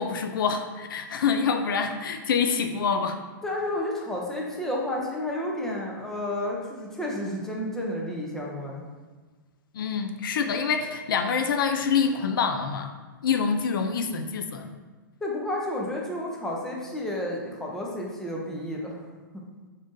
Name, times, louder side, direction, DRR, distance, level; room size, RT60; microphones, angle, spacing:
voice 1, 0.0-3.2 9.7-12.9 13.2-14.7, left 6 dB, 75° left, 6 dB, 0.4 m, -26 dB
voice 2, 3.4-8.8 15.2-19.0, left 1 dB, 5° left, -2 dB, 0.5 m, -31 dB
3.7 x 2.6 x 3.7 m, 1.3 s
hypercardioid pair, 140°, 11 cm